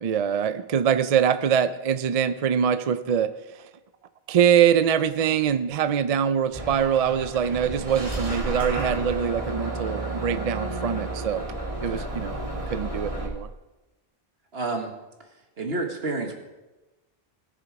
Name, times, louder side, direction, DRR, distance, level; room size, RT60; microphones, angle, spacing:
voice 1, 0.0-3.7 4.3-11.5 11.8-12.4 12.7-13.5, right 8 dB, 50° right, 12 dB, 0.5 m, -23 dB
Bus / Engine starting, 6.5-13.3, right 2 dB, 35° right, 2.4 m, -31 dB
voice 2, 14.5-14.9 15.6-16.3, right 3 dB, 75° right, 3 dB, 1.8 m, -29 dB
20.0 x 7.0 x 4.7 m, 1.1 s
omnidirectional pair, 1.0 m